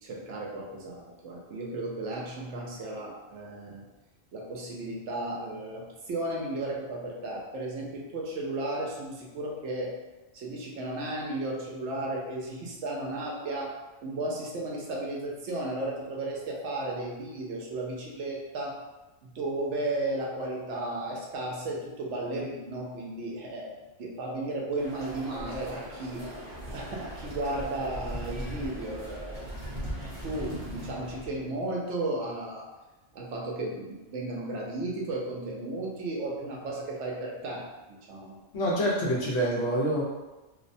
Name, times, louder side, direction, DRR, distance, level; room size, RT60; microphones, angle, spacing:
voice 1, 0.0-3.8 4.3-9.9 10.3-18.8 19.2-26.3 26.7-29.7 30.2-32.7 33.1-38.4, right 2 dB, 75° right, -2 dB, 0.9 m, -34 dB
sound 1, 24.8-31.5, equal, 40° right, 0.7 m, -39 dB
voice 2, 38.5-40.0, equal, 65° left, -4 dB, 0.8 m, -26 dB
2.5 x 2.1 x 2.5 m, 1.1 s
omnidirectional pair, 1.3 m